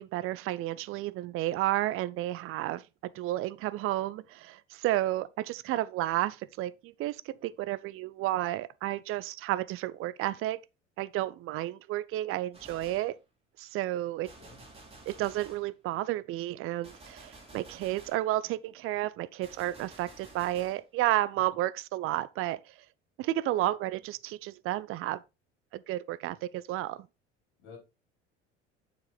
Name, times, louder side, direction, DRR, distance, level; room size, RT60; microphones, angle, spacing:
voice 1, 0.0-2.8 3.1-10.6 11.0-13.1 13.6-14.3 15.1-22.6 23.2-25.2 25.7-27.0, right 15 dB, 40° right, 0.5 m, -32 dB
Gunshot gunfire, 12.5-13.2 14.3-15.7 16.8-18.3 19.4-20.8, right 2 dB, 15° right, 3.4 m, -52 dB
voice 2, 14.4-14.6 21.3-21.5 27.6-27.8, left 5 dB, 60° left, 4.5 m, -51 dB
7.4 x 6.1 x 3.9 m
figure-of-eight pair, 65°, 35 cm